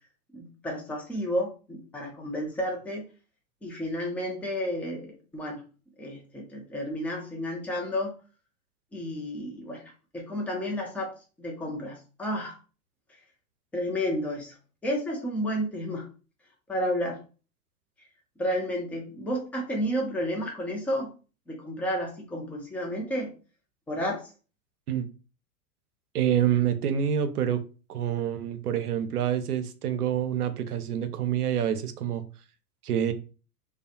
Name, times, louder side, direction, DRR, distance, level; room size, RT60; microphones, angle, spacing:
voice 1, 0.3-3.0 3.6-5.6 6.0-8.1 8.9-9.8 10.1-12.5 13.7-14.5 14.8-16.0 16.7-17.2 18.4-21.1 21.5-23.3 23.9-24.3, equal, 5° left, -1 dB, 0.4 m, -31 dB
voice 2, 26.1-27.6 27.9-32.2 32.8-33.1, right 9 dB, 85° right, 11 dB, 0.5 m, -27 dB
2.3 x 2.1 x 2.7 m, 0.35 s
hypercardioid pair, 95°, 44 cm